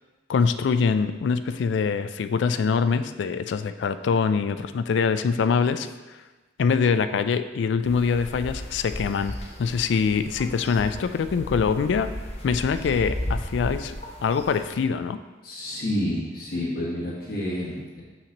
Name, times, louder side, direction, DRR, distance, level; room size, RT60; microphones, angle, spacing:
voice 1, 0.3-6.2 6.6-12.1 12.4-14.0 14.2-15.2, left 5 dB, 75° left, 11 dB, 0.3 m, -24 dB
sound 1, 7.8-14.8, left 1 dB, 35° left, 0.8 m, -35 dB
voice 2, 15.4-18.0, left 1 dB, 55° left, -6 dB, 1.6 m, -29 dB
6.5 x 5.8 x 2.9 m, 1.2 s
head